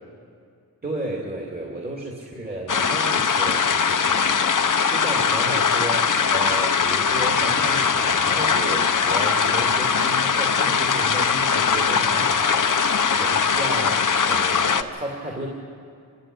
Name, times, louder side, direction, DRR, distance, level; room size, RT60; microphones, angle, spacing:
voice 1, 0.8-15.5, right 1 dB, 25° right, -2 dB, 2.7 m, -33 dB
sound 1, 2.7-14.8, left 6 dB, 55° left, 0.9 m, -21 dB
27.5 x 12.0 x 7.9 m, 2.3 s
wide cardioid pair, 80°, 36 cm